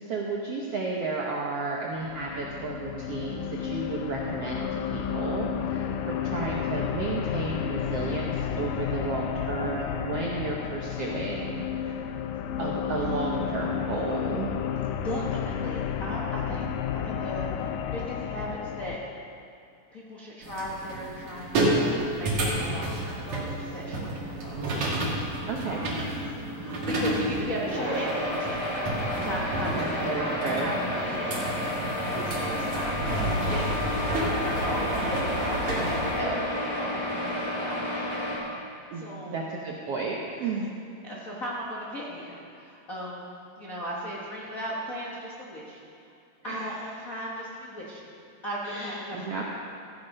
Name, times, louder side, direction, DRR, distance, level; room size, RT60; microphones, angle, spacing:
voice 1, 0.0-11.9 12.6-14.6 25.5-25.8 29.7-30.8 38.9-40.7 46.4-46.6 48.6-49.4, right 3 dB, 70° right, -2 dB, 1.4 m, -32 dB
sound 1, 2.0-19.0, left 8 dB, 85° left, 2.3 m, -32 dB
voice 2, 14.9-16.6 16.9-19.0 19.9-21.9 22.2-24.7 25.2-31.8 32.1-33.6 34.0-38.1 38.9-39.4 40.4-40.7 41.0-43.2 43.6-46.1 46.4-48.1 48.4-49.4, equal, 55° left, -6 dB, 0.9 m, -37 dB
sound 2, 20.4-36.2, right 1 dB, 55° right, 3.4 m, -30 dB
sound 3, 27.6-38.4, left 1 dB, 10° left, 2.7 m, -31 dB
15.0 x 9.7 x 5.4 m, 2.4 s
omnidirectional pair, 4.1 m